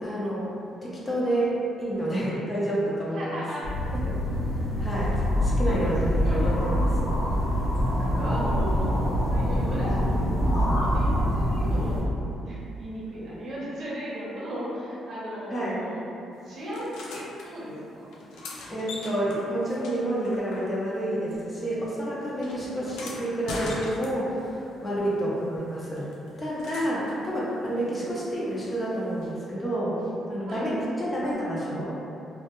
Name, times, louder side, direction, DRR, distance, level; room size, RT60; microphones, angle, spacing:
voice 1, 0.0-3.4 4.1-4.2 4.8-6.9 15.5-15.8 18.7-26.1 26.4-30.0 30.3-31.9, right 1 dB, 20° left, -7 dB, 0.5 m, -29 dB
voice 2, 3.1-3.9 5.6-5.8 6.2-6.5 8.0-9.0 9.3-12.0 12.4-16.0 16.4-18.2 22.4-22.9 24.9-25.3 27.7-28.0 30.5-30.7, equal, 55° right, -7 dB, 0.7 m, -37 dB
sound 1, 3.6-12.0, equal, 65° left, 0.8 m, -25 dB
sound 2, 16.7-17.5 18.1-21.1 21.3-24.5 26.0-27.2 29.2-29.3, left 2 dB, 90° left, 0.3 m, -40 dB
2.1 x 2.1 x 2.9 m, 2.7 s
cardioid pair, 115°, 0 cm